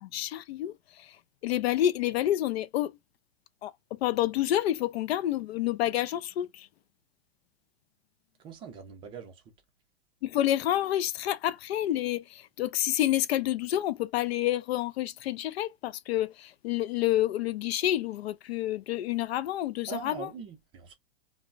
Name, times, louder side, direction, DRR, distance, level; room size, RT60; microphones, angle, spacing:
voice 1, 0.0-3.0 3.6-6.7 10.2-20.3, left 13 dB, 75° left, 0.5 m, -29 dB
voice 2, 8.4-9.4 19.9-20.9, right 7 dB, 15° right, 0.4 m, -42 dB
2.2 x 2.0 x 3.7 m
supercardioid pair, 150°, 31 cm